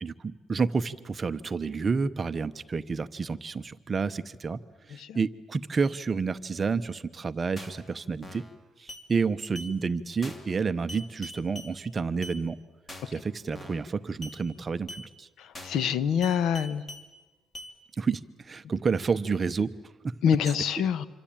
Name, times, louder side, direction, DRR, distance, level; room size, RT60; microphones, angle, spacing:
voice 1, 0.0-4.6 4.9-8.4 8.8-12.6 13.1-15.3 18.0-19.7 20.0-20.1, right 5 dB, 30° right, 12 dB, 0.9 m, -30 dB
sound 1, 7.6-7.9 8.2-8.5 8.9-9.0 9.5-9.7 10.2-10.5 10.9-11.7 12.2-12.4 12.9-13.2 13.5-13.9 14.2-14.4 14.9-15.0 15.5-15.9 16.2-17.0 17.5-17.7, left 1 dB, 20° left, 2.7 m, -42 dB
voice 2, 15.4-16.8 20.2-21.1, left 8 dB, 75° left, 16 dB, 1.1 m, -26 dB
26.5 x 25.0 x 8.9 m, 1.2 s
cardioid pair, 145°, 0 cm